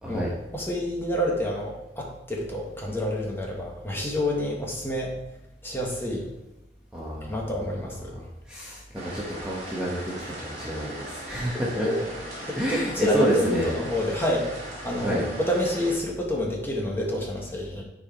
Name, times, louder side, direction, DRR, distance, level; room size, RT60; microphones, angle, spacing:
voice 1, 0.0-0.3 6.9-7.5 8.1-10.1 10.4-11.9 12.5-13.7 15.0-15.3, right 1 dB, 5° right, -5 dB, 1.2 m, -29 dB
voice 2, 0.5-5.2 5.6-6.3 7.2-8.1 11.5-12.1 12.5-17.8, left 1 dB, 15° left, -2 dB, 1.6 m, -28 dB
sound 1, 8.9-15.9, right 1 dB, 40° right, 3.0 m, -39 dB
10.5 x 4.9 x 4.5 m, 0.91 s
head